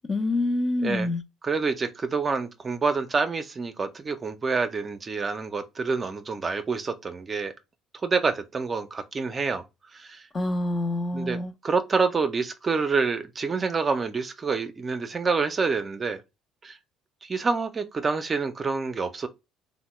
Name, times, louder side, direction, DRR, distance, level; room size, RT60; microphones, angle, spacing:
voice 1, 0.1-1.2 10.3-11.5, left 2 dB, 35° left, 0.5 m, -26 dB
voice 2, 1.4-7.5 8.0-9.6 9.9-10.3 11.1-11.4 11.6-16.2 16.6-16.8 17.2-19.3, right 4 dB, 35° right, 0.5 m, -27 dB
3.5 x 2.1 x 3.0 m
supercardioid pair, 80°, 0 cm